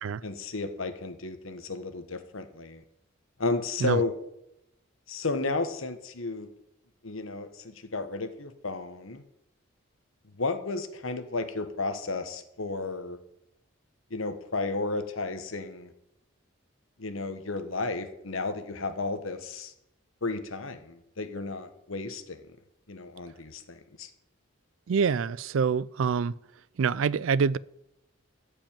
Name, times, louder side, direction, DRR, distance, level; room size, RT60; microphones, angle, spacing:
voice 1, 0.2-2.8 3.4-4.1 5.1-6.5 7.0-9.2 10.3-13.2 14.1-15.9 17.0-19.7 20.2-22.4 22.9-24.1, left 3 dB, 80° left, 1.3 m, -33 dB
voice 2, 24.9-26.3 26.8-27.6, right 6 dB, 75° right, 0.4 m, -26 dB
14.0 x 5.3 x 8.8 m
head